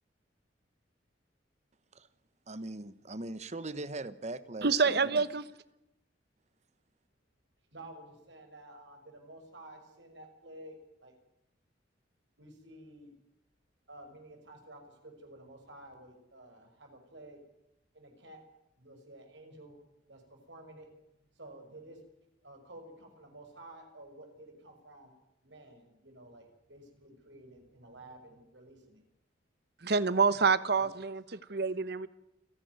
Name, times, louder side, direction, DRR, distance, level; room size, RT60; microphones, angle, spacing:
voice 1, 2.5-5.2, right 2 dB, 40° right, 15 dB, 1.1 m, -40 dB
voice 2, 4.6-5.4 29.8-32.1, right 4 dB, 60° right, 15 dB, 1.1 m, -27 dB
voice 3, 7.7-11.1 12.4-13.1 13.9-17.4 17.9-18.4 18.8-19.8 20.1-20.9 21.3-22.0 22.4-25.1 25.4-29.0 30.6-31.4, right 1 dB, 75° right, 4 dB, 5.8 m, -52 dB
29.5 x 11.0 x 9.5 m, 0.86 s
head